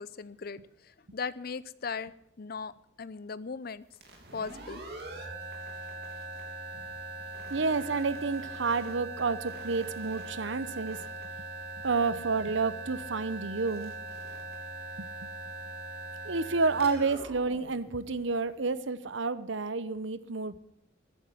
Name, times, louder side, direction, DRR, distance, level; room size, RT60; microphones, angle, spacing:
voice 1, 0.0-2.1 2.4-2.7 3.0-3.8 4.3-4.8, left 5 dB, 50° left, 17 dB, 0.6 m, -38 dB
sound 1, 3.9-18.6, right 2 dB, 55° right, 3.4 m, -41 dB
voice 2, 7.5-11.0 11.8-13.9 15.0-15.1 16.2-20.6, right 4 dB, 70° right, 15 dB, 0.8 m, -30 dB
14.0 x 10.0 x 7.7 m, 0.73 s
head